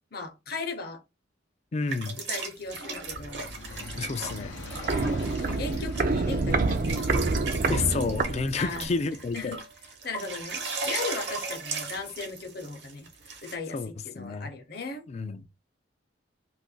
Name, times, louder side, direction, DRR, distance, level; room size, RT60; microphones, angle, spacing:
voice 1, 0.1-1.0 2.2-3.5 4.9-7.3 8.6-8.9 9.3-9.6 10.0-13.1 13.4-15.1, left 4 dB, 55° left, 0.8 m, -37 dB
voice 2, 1.7-2.2 4.0-4.6 7.7-9.6 13.7-14.5 15.1-15.4, left 4 dB, 35° left, 0.3 m, -30 dB
sound 1, 1.9-13.6, right 4 dB, 65° right, 0.8 m, -37 dB
sound 2, 2.6-8.7, left 3 dB, 85° left, 0.6 m, -45 dB
Walk footsteps, 4.3-9.0 9.3-9.4, right 3 dB, 45° right, 0.4 m, -27 dB
2.5 x 2.5 x 3.7 m
head